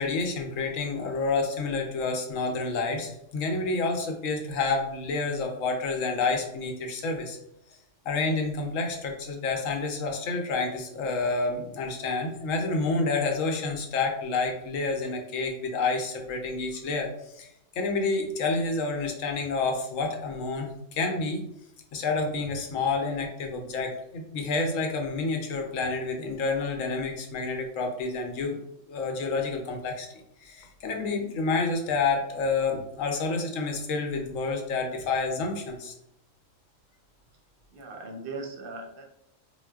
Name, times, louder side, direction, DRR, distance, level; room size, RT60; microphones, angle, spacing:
voice 1, 0.0-7.4 8.0-17.1 17.3-17.5 17.8-21.4 21.9-28.6 28.9-30.1 30.4-35.9, left 3 dB, 85° left, 3 dB, 1.0 m, -29 dB
voice 2, 37.7-39.1, right 3 dB, 55° right, 2 dB, 0.7 m, -39 dB
3.8 x 2.1 x 2.3 m, 0.79 s
omnidirectional pair, 1.3 m